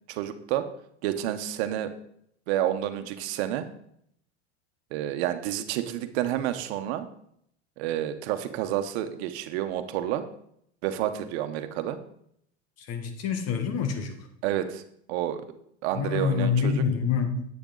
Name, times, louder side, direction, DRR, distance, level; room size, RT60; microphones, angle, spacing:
voice 1, 0.1-0.7 1.0-1.9 2.5-3.7 4.9-7.1 7.8-10.2 10.8-12.0 14.4-14.8 15.1-15.5 15.8-16.8, right 12 dB, 70° right, 9 dB, 1.2 m, -29 dB
voice 2, 12.8-14.2 15.9-17.5, left 6 dB, 45° left, 7 dB, 1.8 m, -26 dB
10.0 x 8.4 x 4.0 m, 0.71 s
supercardioid pair, 115°, 34 cm